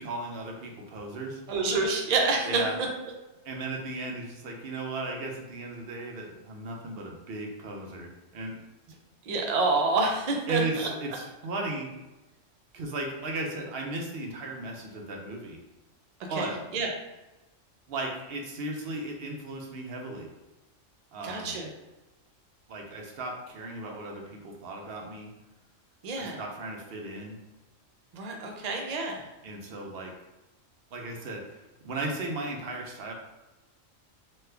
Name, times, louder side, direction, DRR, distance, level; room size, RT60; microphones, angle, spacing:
voice 1, 0.0-1.4 2.5-2.7 3.4-8.6 10.5-11.9 12.7-15.6 16.3-16.6 17.9-20.3 21.1-21.5 22.7-25.3 26.2-27.4 29.4-30.1 30.9-33.1, right 2 dB, 60° right, 1 dB, 0.7 m, -36 dB
voice 2, 1.5-2.9 9.2-10.9 16.4-16.9 21.2-21.7 26.0-26.4 28.1-29.3, right 3 dB, 90° right, 1 dB, 0.3 m, -28 dB
3.2 x 2.2 x 3.2 m, 1.0 s
omnidirectional pair, 1.4 m